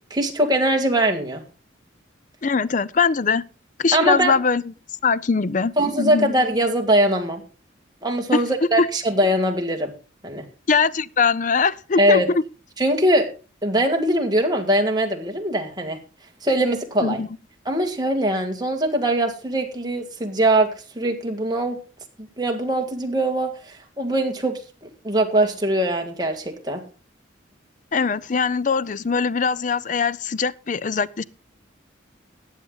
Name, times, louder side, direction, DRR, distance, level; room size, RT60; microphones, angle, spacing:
voice 1, 0.1-1.4 3.9-4.4 5.8-7.4 8.0-9.9 10.2-10.4 12.0-12.3 12.8-13.3 13.6-16.0 16.4-17.2 17.7-20.7 21.0-21.8 22.2-24.6 25.0-26.8, right 1 dB, 20° right, 2.0 m, -21 dB
voice 2, 2.4-3.4 3.8-4.6 5.0-6.3 8.3-8.4 8.8-8.9 10.7-12.4 17.0-17.3 27.9-31.2, left 5 dB, 40° left, 0.5 m, -21 dB
14.5 x 9.5 x 3.9 m
head